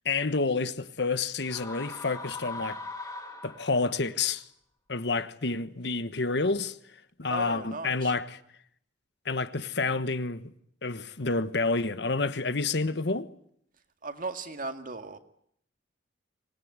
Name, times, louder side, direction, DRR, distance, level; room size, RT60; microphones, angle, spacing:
voice 1, 0.0-2.8 3.4-4.4 4.9-6.8 7.2-8.4 9.2-10.5 10.8-13.3, left 3 dB, 65° left, 1.3 m, -29 dB
sound 1, 1.4-4.0, left 3 dB, 20° left, 3.6 m, -40 dB
voice 2, 7.3-8.1 14.0-15.2, right 3 dB, 50° right, 2.1 m, -37 dB
25.5 x 20.0 x 9.6 m
head